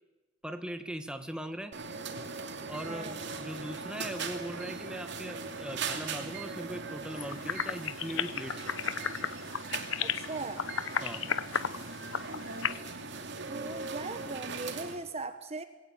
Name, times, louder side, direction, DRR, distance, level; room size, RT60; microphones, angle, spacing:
voice 1, 0.4-1.7 2.7-8.8 11.0-11.3, right 1 dB, 5° right, 7 dB, 1.5 m, -40 dB
sound 1, 1.7-15.0, right 4 dB, 65° right, 2.6 m, -40 dB
voice 2, 2.9-3.2 10.0-10.7 13.4-15.6, right 3 dB, 35° right, 9 dB, 1.1 m, -39 dB
sound 2, 7.2-12.8, left 7 dB, 75° left, 0.9 m, -33 dB
22.0 x 17.5 x 8.5 m, 1.2 s
head